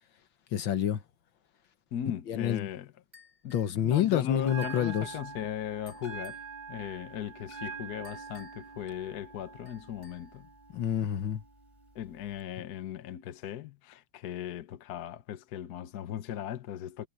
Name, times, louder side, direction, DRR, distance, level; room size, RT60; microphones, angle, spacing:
voice 1, 0.5-1.0 2.3-2.7 3.5-5.1 10.7-11.4, left 10 dB, 80° left, 1.9 m, -28 dB
voice 2, 1.9-2.9 3.4-6.4 6.7-10.5 11.9-17.1, left 10 dB, 60° left, 1.4 m, -38 dB
sound 1, 3.1-3.8 4.6-4.9 5.9-6.5 8.0-8.8 9.7-10.4, left 4 dB, 30° right, 6.7 m, -57 dB
Bell, 4.4-12.4, right 5 dB, 15° left, 4.2 m, -45 dB
omnidirectional pair, 2.1 m